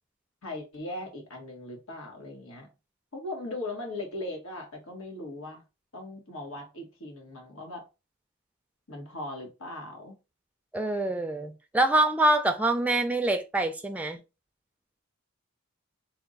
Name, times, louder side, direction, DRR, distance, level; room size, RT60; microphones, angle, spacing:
voice 1, 0.4-2.7 3.1-5.6 5.9-7.8 8.9-10.2, left 2 dB, 80° left, 1.4 m, -39 dB
voice 2, 10.7-14.2, right 2 dB, 5° right, 0.4 m, -25 dB
3.4 x 2.3 x 3.9 m
head